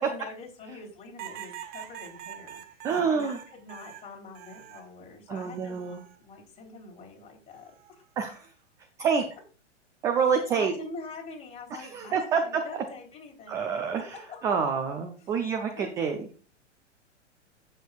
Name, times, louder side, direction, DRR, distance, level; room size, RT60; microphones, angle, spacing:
voice 1, 0.0-2.6 3.1-7.7 10.5-13.7 14.1-14.7 15.2-15.3 15.7-15.9, left 3 dB, 15° left, 0 dB, 3.2 m, -45 dB
sound 1, 1.2-4.9 5.4-6.2 7.5-7.9, right 11 dB, 25° right, 0.8 m, -44 dB
voice 2, 2.8-3.4 5.3-6.0 8.2-8.5 9.0-9.2 10.0-10.7 11.8-12.4 13.5-14.2 14.4-16.2, right 6 dB, 10° right, 5 dB, 0.4 m, -27 dB
17.0 x 6.5 x 2.4 m, 0.38 s
figure-of-eight pair, 105°, 37 cm